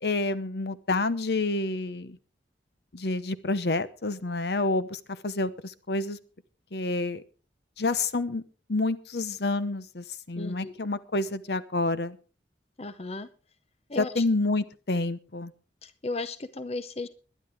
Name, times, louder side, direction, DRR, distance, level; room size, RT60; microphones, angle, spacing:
voice 1, 0.0-2.2 2.9-6.2 6.7-7.2 7.8-8.4 8.7-12.2 14.0-15.5, left 2 dB, 65° left, 14 dB, 0.9 m, -28 dB
voice 2, 10.4-10.7 12.8-13.3 13.9-14.2 15.8-17.1, left 3 dB, 35° left, 12 dB, 0.7 m, -35 dB
21.5 x 10.5 x 3.5 m, 0.36 s
head